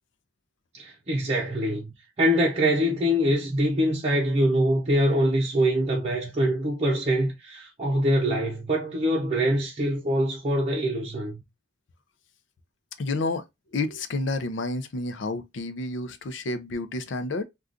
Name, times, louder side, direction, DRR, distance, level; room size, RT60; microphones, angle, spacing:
voice 1, 0.7-11.4, equal, 35° right, 0.7 m, -24 dB
voice 2, 13.0-13.4 13.7-17.4, left 2 dB, 70° left, 0.5 m, -30 dB
3.6 x 2.3 x 2.4 m
head